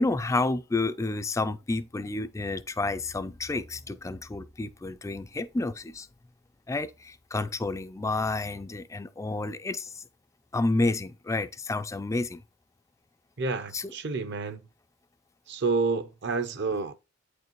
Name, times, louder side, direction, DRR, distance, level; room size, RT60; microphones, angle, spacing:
voice 1, 0.0-6.1 6.7-10.0 10.5-12.4 13.7-13.9, left 2 dB, 15° left, 0.3 m, -30 dB
voice 2, 13.4-14.6 15.5-16.9, right 4 dB, 55° right, 0.7 m, -29 dB
8.6 x 4.7 x 3.0 m
head